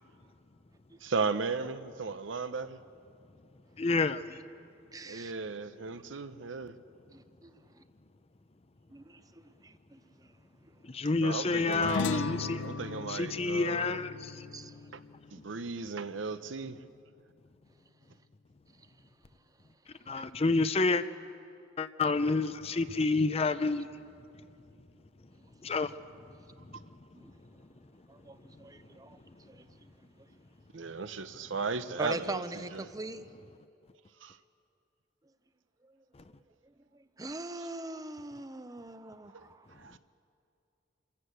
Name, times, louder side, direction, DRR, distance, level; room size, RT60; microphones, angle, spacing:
voice 1, 1.0-2.8 5.1-6.8 11.2-12.1 12.6-14.0 14.9-15.0 15.3-16.8 30.7-32.9 34.2-34.4 39.3-39.4 39.8-40.0, right 4 dB, 85° right, 0.8 m, -36 dB
voice 2, 3.8-4.2 10.9-12.6 13.1-14.3 20.1-21.0 21.8-23.9 25.6-25.9, left 3 dB, 30° left, 0.6 m, -28 dB
voice 3, 4.9-5.3 7.1-7.8 8.9-10.4 10.6-10.7 12.1-12.2 14.5-14.8 25.6-25.7 27.1-27.3 28.1-29.9 32.0-33.3 35.8-36.0 36.6-39.7, right 2 dB, 20° right, 0.7 m, -42 dB
sound 1, 11.7-16.4, left 4 dB, 85° left, 0.6 m, -38 dB
26.5 x 14.5 x 8.1 m
head